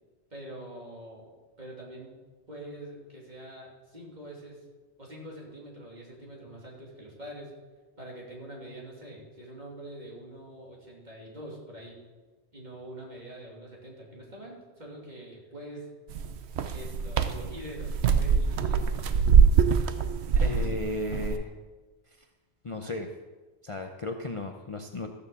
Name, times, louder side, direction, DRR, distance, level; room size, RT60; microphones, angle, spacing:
voice 1, 0.3-1.3 1.6-2.2 2.5-4.6 5.0-7.5 8.0-12.0 12.5-15.9 16.7-18.9, right 1 dB, 40° right, -3 dB, 3.1 m, -44 dB
sound 1, 16.1-21.3, right 6 dB, 70° right, 1.0 m, -23 dB
voice 2, 20.3-21.5 22.2-22.3 22.6-23.1 23.6-25.1, left 2 dB, 35° left, 4 dB, 0.6 m, -34 dB
14.0 x 6.8 x 7.0 m, 1.3 s
omnidirectional pair, 1.2 m